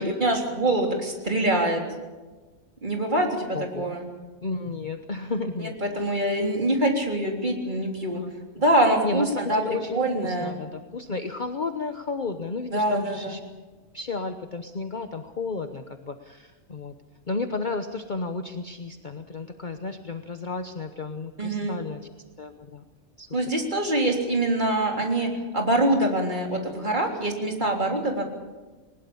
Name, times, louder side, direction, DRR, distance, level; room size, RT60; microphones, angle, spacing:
voice 1, 0.0-1.8 2.8-4.1 5.6-8.2 8.6-10.5 12.7-13.3 21.4-21.8 23.3-28.2, right 1 dB, 35° right, 1 dB, 3.7 m, -24 dB
voice 2, 3.5-3.9 4.4-6.2 8.1-8.3 9.0-13.4 13.9-16.9 17.3-22.0 22.4-22.8 23.2-23.3, left 3 dB, 40° left, 7 dB, 1.1 m, -33 dB
21.0 x 20.5 x 7.1 m, 1.3 s
omnidirectional pair, 1.4 m